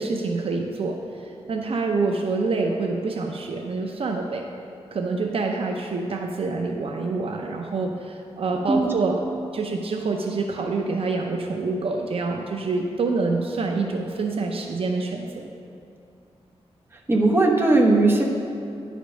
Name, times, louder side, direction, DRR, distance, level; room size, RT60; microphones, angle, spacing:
voice 1, 0.0-4.4 4.9-9.2 9.5-15.5, right 3 dB, 60° right, 2 dB, 0.6 m, -26 dB
voice 2, 17.1-18.2, right 2 dB, 20° right, -1 dB, 1.1 m, -18 dB
10.5 x 5.1 x 6.3 m, 2.6 s
wide cardioid pair, 130°, 11 cm